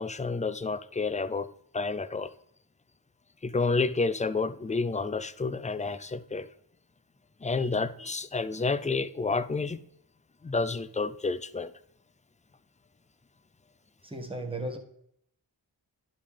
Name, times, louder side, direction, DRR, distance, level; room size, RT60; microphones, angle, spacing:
voice 1, 0.0-1.5 1.7-2.3 3.4-6.5 7.4-9.8 10.4-11.7, left 4 dB, 15° left, 0.4 m, -29 dB
voice 2, 14.0-14.8, right 1 dB, 10° right, 1.3 m, -35 dB
11.0 x 5.3 x 3.4 m
cardioid pair, 50°, 48 cm